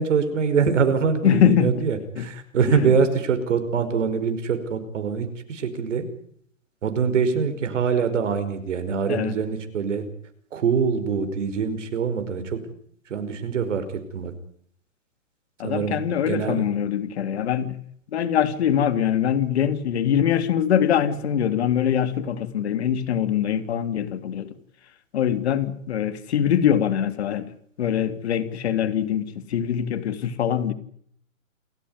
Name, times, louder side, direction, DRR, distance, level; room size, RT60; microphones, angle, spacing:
voice 1, 0.0-6.1 6.8-10.1 10.5-12.6 13.1-14.3 15.6-16.6, right 6 dB, 60° right, 9 dB, 5.4 m, -24 dB
voice 2, 1.2-1.8 2.2-2.3 2.9-3.0 9.1-9.3 15.6-17.8 18.1-24.6 25.1-27.5 27.8-30.7, left 9 dB, 50° left, 11 dB, 2.9 m, -23 dB
29.0 x 15.0 x 9.7 m, 0.67 s
hypercardioid pair, 155°, 41 cm